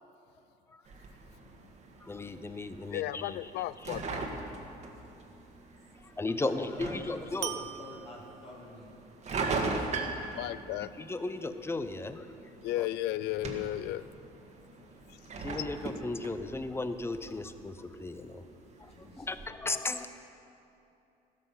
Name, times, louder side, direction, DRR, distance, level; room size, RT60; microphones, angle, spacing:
sound 1, 0.9-19.5, right 3 dB, 45° right, 1.7 m, -41 dB
voice 1, 2.0-3.5 3.8-3.9 6.0-7.5 10.8-12.3 15.4-18.4 18.8-18.9 19.2-20.1, left 2 dB, 15° left, 0.7 m, -36 dB
voice 2, 2.9-4.2 10.3-10.9 12.6-14.1 15.1-15.2, left 14 dB, 85° left, 0.4 m, -34 dB
sound 2, 3.9-4.6 7.4-8.8, right 13 dB, 85° right, 0.6 m, -42 dB
voice 3, 4.9-5.3 6.4-8.9 9.3-10.5 18.9-19.3, left 2 dB, 35° left, 2.5 m, -49 dB
14.0 x 13.5 x 5.8 m
cardioid pair, 110°, 17 cm